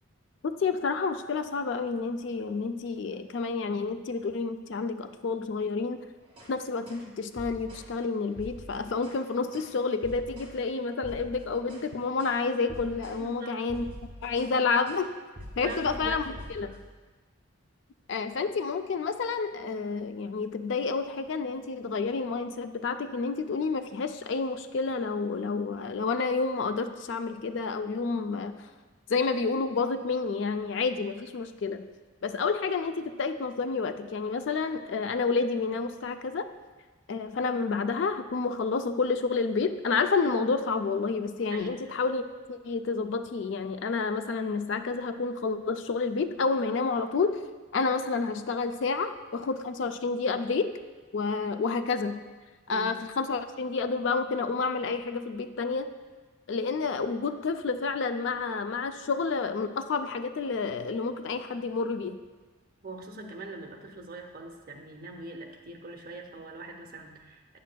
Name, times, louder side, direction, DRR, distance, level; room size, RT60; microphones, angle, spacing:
voice 1, 0.4-6.0 6.5-13.8 14.2-15.1 15.6-16.7 18.1-28.6 29.1-31.8 32.2-36.5 37.1-42.2 42.5-47.4 47.7-50.7 51.1-52.2 52.7-55.9 56.5-62.2, left 4 dB, 55° left, 9 dB, 0.3 m, -29 dB
sound 1, 6.2-6.5 6.9-7.1 7.4-7.9 8.3-9.2 9.5-9.7 10.0-10.6 10.9-11.9 12.2-12.4 12.7-13.2 13.5-14.6 14.8-15.1 15.4-16.9, equal, 25° right, 1.9 m, -45 dB
voice 2, 13.2-13.6 15.6-16.8 41.5-41.8 52.7-52.9 62.8-67.6, right 2 dB, 45° right, 2 dB, 0.7 m, -42 dB
9.1 x 7.4 x 2.2 m, 1.3 s
head